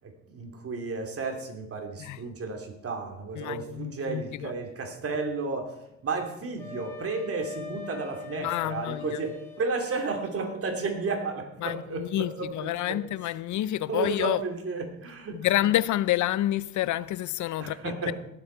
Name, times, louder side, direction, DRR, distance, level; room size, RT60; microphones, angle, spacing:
voice 1, 0.0-13.0 13.9-15.5 17.6-18.1, right 4 dB, 50° right, 2.9 m, -33 dB
voice 2, 3.4-4.5 8.4-9.2 11.6-14.4 15.3-18.1, left 14 dB, 75° left, 0.5 m, -28 dB
Wind instrument woodwind instrument, 6.6-9.8, left 6 dB, 10° left, 3.2 m, -41 dB
18.5 x 8.0 x 4.6 m
cardioid pair, 90°, 30 cm